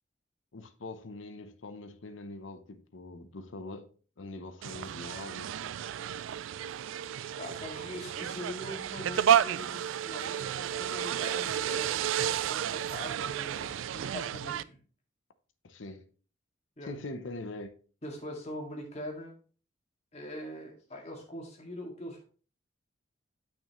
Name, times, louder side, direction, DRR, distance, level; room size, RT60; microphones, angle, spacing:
voice 1, 0.5-3.9 4.2-5.7 15.6-16.1 16.8-17.7, left 2 dB, 80° left, 0.8 m, -43 dB
sound 1, 4.6-14.6, right 9 dB, 85° right, 0.3 m, -31 dB
voice 2, 7.4-12.0 12.5-14.8 16.8-16.9 18.0-19.4 20.1-22.2, left 1 dB, 35° left, 2.1 m, -42 dB
8.8 x 6.0 x 3.1 m
head